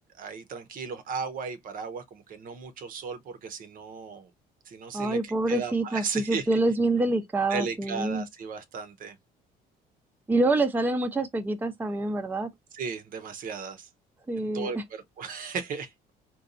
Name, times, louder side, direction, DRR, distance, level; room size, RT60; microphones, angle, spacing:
voice 1, 0.1-4.3 4.7-6.6 7.5-9.2 12.7-13.9 14.4-15.9, right 5 dB, 55° right, 0.7 m, -36 dB
voice 2, 4.9-8.2 10.3-12.5 14.3-14.8, right 2 dB, 10° right, 0.5 m, -26 dB
4.0 x 2.3 x 2.5 m
cardioid pair, 110°, 17 cm